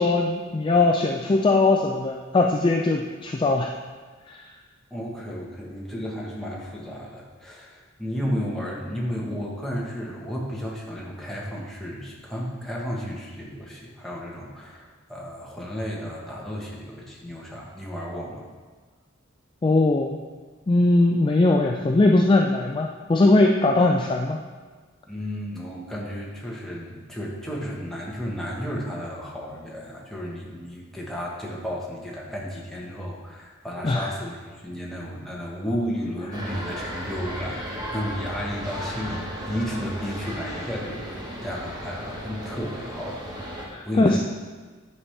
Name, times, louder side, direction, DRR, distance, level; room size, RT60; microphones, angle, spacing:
voice 1, 0.0-3.7 4.3-4.4 19.6-20.2 20.7-24.4 33.8-34.1 43.7-44.2, left 2 dB, 25° left, 1 dB, 0.3 m, -20 dB
voice 2, 4.9-18.4 25.0-43.2 43.5-44.2, equal, ahead, -4 dB, 1.2 m, -33 dB
sound 1, 36.3-43.7, equal, 20° right, 1.1 m, -35 dB
9.6 x 5.6 x 3.3 m, 1.4 s
head